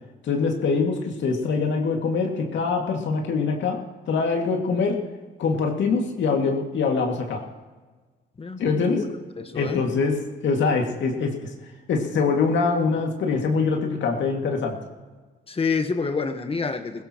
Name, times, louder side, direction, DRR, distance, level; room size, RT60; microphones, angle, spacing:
voice 1, 0.2-3.8 4.1-5.0 5.4-7.4 8.6-9.0 9.6-11.5 11.9-14.8, left 4 dB, 70° left, 2 dB, 2.1 m, -24 dB
voice 2, 8.4-9.0 9.4-9.8 15.5-17.0, left 4 dB, 30° left, 8 dB, 1.2 m, -28 dB
21.0 x 16.5 x 3.0 m, 1.3 s
cardioid pair, 90°, 20 cm